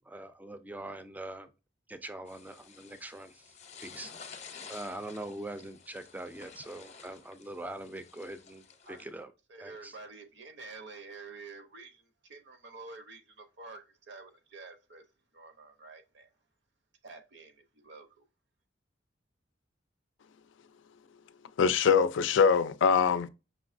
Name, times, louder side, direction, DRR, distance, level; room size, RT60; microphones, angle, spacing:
voice 1, 0.1-1.5 1.9-4.1 4.7-9.3 9.6-9.9, right 1 dB, 10° right, 0.4 m, -43 dB
sound 1, 2.3-9.1, left 6 dB, 40° left, 0.6 m, -51 dB
voice 2, 9.5-15.1 15.3-16.3 17.0-18.2, right 3 dB, 65° right, 0.8 m, -49 dB
voice 3, 21.6-23.3, left 6 dB, 75° left, 0.4 m, -23 dB
5.4 x 3.0 x 2.5 m
head